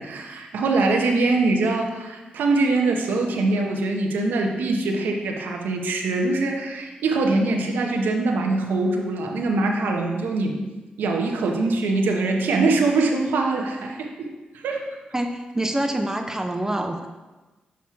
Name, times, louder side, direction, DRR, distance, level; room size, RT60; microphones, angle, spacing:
voice 1, 0.0-10.6 11.0-14.3 14.5-14.9, right 3 dB, 90° right, 1 dB, 0.8 m, -23 dB
voice 2, 15.1-17.1, right 1 dB, 15° right, 5 dB, 0.6 m, -26 dB
7.2 x 3.0 x 5.8 m, 1.1 s
cardioid pair, 55°, 3 cm